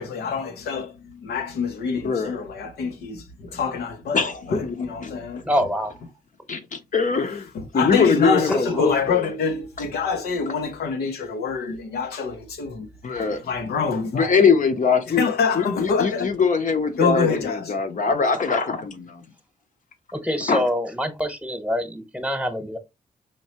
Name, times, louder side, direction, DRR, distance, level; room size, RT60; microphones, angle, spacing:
voice 1, 0.0-5.4 7.5-14.4 15.1-16.3 16.9-17.7, left 5 dB, 90° left, 0.6 m, -26 dB
voice 2, 2.0-2.3 4.1-4.7 5.0-5.1 6.5-7.5 7.7-9.2 13.0-13.4 14.1-15.2 15.5-19.2 20.5-20.7, left 5 dB, 55° left, 0.8 m, -22 dB
voice 3, 5.4-6.0 8.5-9.0 20.1-22.8, equal, 5° right, 1.0 m, -26 dB
4.5 x 2.8 x 2.9 m
cardioid pair, 50°, 16 cm